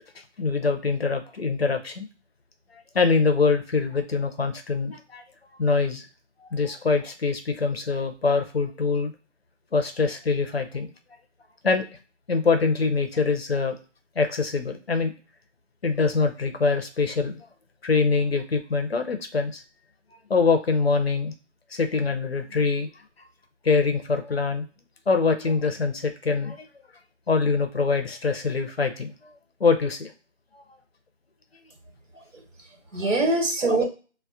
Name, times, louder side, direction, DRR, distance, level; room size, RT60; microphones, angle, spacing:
voice 1, 0.4-2.1 2.9-5.2 5.6-6.0 6.4-9.1 9.7-10.9 11.6-11.9 12.3-13.8 14.2-15.1 15.8-17.4 17.8-19.6 20.3-21.3 21.7-22.9 23.6-24.6 25.1-26.7 27.3-29.3 29.6-30.1 30.5-30.6, left 4 dB, 55° left, 7 dB, 0.5 m, -24 dB
voice 2, 32.1-33.8, right 2 dB, 85° right, 3 dB, 1.1 m, -25 dB
2.3 x 2.0 x 2.6 m, 0.35 s
figure-of-eight pair, 175°, 37 cm